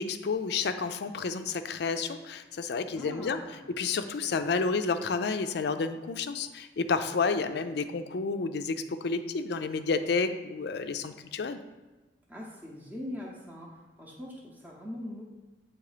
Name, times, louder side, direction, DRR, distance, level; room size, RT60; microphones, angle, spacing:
voice 1, 0.0-3.4 3.8-11.6, left 4 dB, 65° left, 9 dB, 0.4 m, -30 dB
voice 2, 2.9-3.7 12.3-15.2, left 1 dB, 10° right, -4 dB, 0.7 m, -42 dB
7.7 x 3.1 x 4.9 m, 1.2 s
head